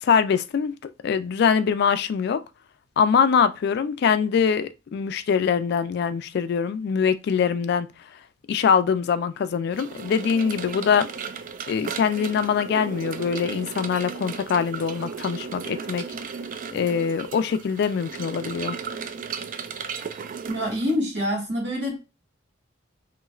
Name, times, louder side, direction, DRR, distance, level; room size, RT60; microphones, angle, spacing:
voice 1, 0.0-2.4 3.0-7.9 8.5-11.1 11.7-16.1 16.7-18.8, left 6 dB, 60° left, 0.3 m, -23 dB
sound 1, 9.7-21.0, right 6 dB, 45° right, 0.3 m, -35 dB
voice 2, 20.5-22.0, equal, 65° right, 1.7 m, -26 dB
3.0 x 3.0 x 2.3 m
head